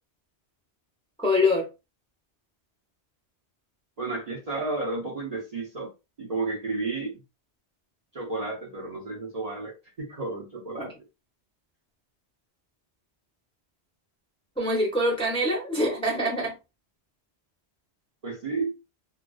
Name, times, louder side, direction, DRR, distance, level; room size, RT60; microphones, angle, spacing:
voice 1, 1.2-1.7 10.8-10.9 14.6-16.6, left 1 dB, 5° left, 0.5 m, -24 dB
voice 2, 4.0-5.9 6.2-7.2 8.1-10.9 18.2-18.7, right 3 dB, 45° right, 0.6 m, -32 dB
2.4 x 2.2 x 2.3 m
omnidirectional pair, 1.1 m